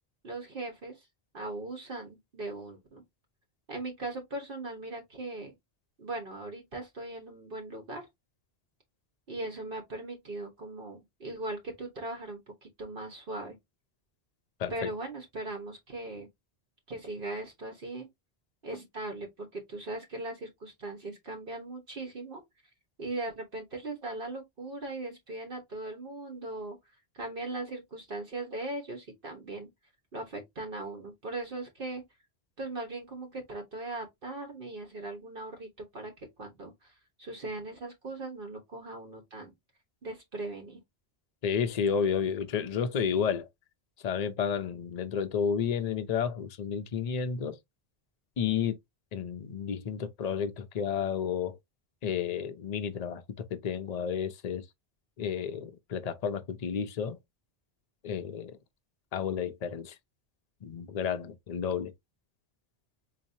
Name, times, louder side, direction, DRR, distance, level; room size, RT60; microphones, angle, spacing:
voice 1, 0.2-1.0 1.3-3.0 3.7-5.5 6.0-8.1 9.3-13.6 14.7-16.3 16.9-18.1 18.6-22.4 23.0-26.8 27.1-29.7 30.1-32.0 32.6-36.1 36.4-36.9 37.2-39.5 40.0-40.8, right 2 dB, 60° right, 1.3 m, -39 dB
voice 2, 14.6-14.9 41.4-43.5 44.0-47.6 48.4-48.8 49.1-51.6 52.0-54.6 55.2-57.2 58.0-58.6 59.1-59.9 60.6-61.9, left 7 dB, 45° left, 0.6 m, -31 dB
4.3 x 2.9 x 2.7 m
omnidirectional pair, 1.1 m